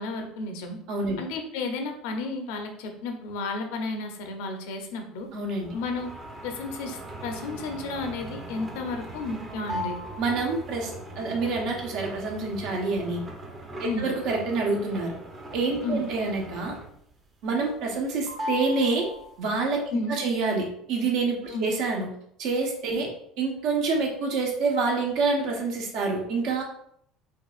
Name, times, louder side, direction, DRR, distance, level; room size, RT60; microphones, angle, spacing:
voice 1, 0.0-0.8 1.2-5.3 5.7-6.1 6.4-10.0 13.8-14.1 15.8-16.0 19.9-20.2 21.5-21.7, left 3 dB, 80° left, 4 dB, 0.6 m, -32 dB
voice 2, 0.9-1.2 5.3-5.7 10.2-13.2 13.8-15.1 15.5-16.7 17.4-19.1 19.4-22.1 22.4-23.1 23.4-26.6, right 3 dB, 65° right, 0 dB, 0.9 m, -27 dB
sound 1, 5.6-17.1 17.4-18.0 18.3-19.6, equal, 25° right, 0.7 m, -39 dB
4.5 x 2.5 x 2.4 m, 0.70 s
supercardioid pair, 105°, 0 cm